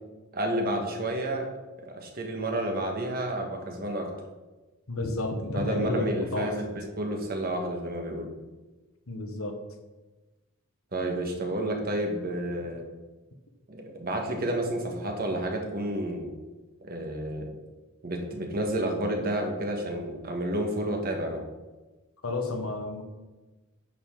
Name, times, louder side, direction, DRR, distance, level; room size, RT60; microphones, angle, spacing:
voice 1, 0.3-1.5 1.8-4.1 5.5-8.3 10.9-12.8 13.7-16.3 16.8-17.5 18.0-21.4, right 1 dB, 45° right, 2 dB, 1.5 m, -30 dB
voice 2, 4.9-6.7 9.1-9.6 22.2-23.0, left 2 dB, 90° left, 5 dB, 1.2 m, -31 dB
9.1 x 6.6 x 3.8 m, 1.2 s
head